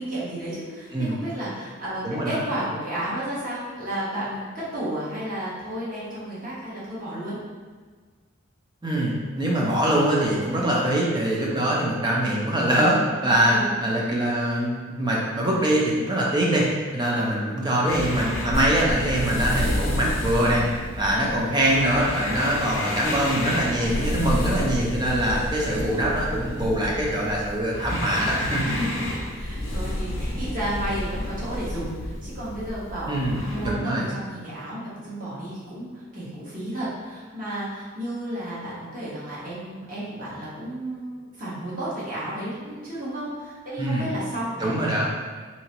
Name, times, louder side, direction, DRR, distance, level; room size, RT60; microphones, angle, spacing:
voice 1, 0.0-4.4 4.7-7.4 11.5-11.7 13.2-13.6 21.0-21.3 23.8-24.3 28.6-45.1, right 1 dB, 40° right, -9 dB, 1.2 m, -32 dB
voice 2, 2.0-2.4 8.8-13.5 13.8-20.6 21.0-28.6 33.1-33.4 33.6-34.0 43.8-44.0 44.6-45.1, right 1 dB, 20° right, -3 dB, 0.6 m, -23 dB
sound 1, 17.9-33.7, left 1 dB, 65° left, 0.6 m, -30 dB
3.3 x 2.9 x 2.9 m, 1.5 s
head